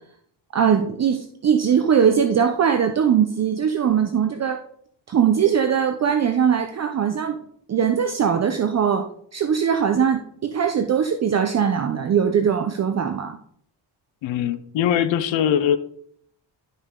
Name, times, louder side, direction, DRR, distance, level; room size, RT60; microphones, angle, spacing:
voice 1, 0.5-4.6 5.1-7.4 7.7-9.1 9.3-13.4, right 7 dB, 35° right, 6 dB, 0.7 m, -20 dB
voice 2, 14.2-15.8, left 9 dB, 85° left, 11 dB, 0.8 m, -21 dB
11.5 x 5.4 x 3.8 m, 0.64 s
cardioid pair, 130°, 44 cm